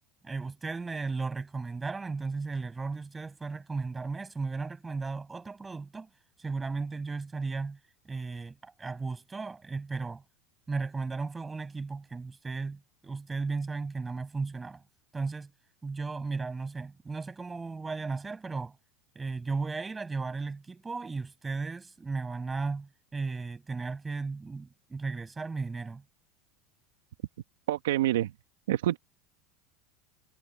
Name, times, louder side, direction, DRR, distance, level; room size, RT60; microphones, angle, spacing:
voice 1, 0.2-6.1 6.4-7.8 8.0-10.2 10.7-14.8 15.1-15.5 15.8-18.7 19.1-26.0, right 4 dB, 15° right, 6.8 m, -35 dB
voice 2, 27.7-28.3 28.7-29.0, right 13 dB, 85° right, 1.3 m, -26 dB
hypercardioid pair, 95°, 0 cm